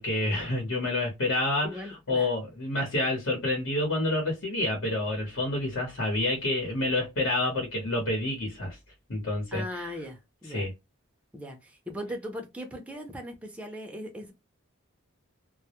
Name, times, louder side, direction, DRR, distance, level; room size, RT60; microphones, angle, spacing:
voice 1, 0.0-1.7 2.1-8.8 9.1-9.9 10.5-10.7, left 2 dB, 70° left, 0.9 m, -28 dB
voice 2, 1.6-2.3 9.5-10.7 11.3-14.3, equal, 5° right, 0.5 m, -39 dB
2.2 x 2.0 x 2.8 m
head